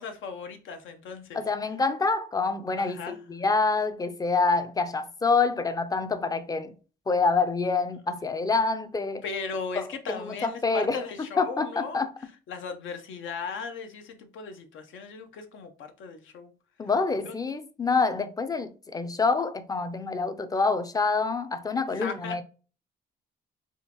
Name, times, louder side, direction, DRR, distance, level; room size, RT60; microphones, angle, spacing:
voice 1, 0.0-1.4 2.8-3.2 9.2-12.0 12.5-16.5 17.3-17.4 22.0-22.4, left 5 dB, 75° left, 0.7 m, -37 dB
voice 2, 1.3-6.7 7.1-9.2 9.7-12.1 16.8-22.4, left 4 dB, 20° left, 0.4 m, -27 dB
3.6 x 2.5 x 2.8 m
cardioid pair, 90°, 20 cm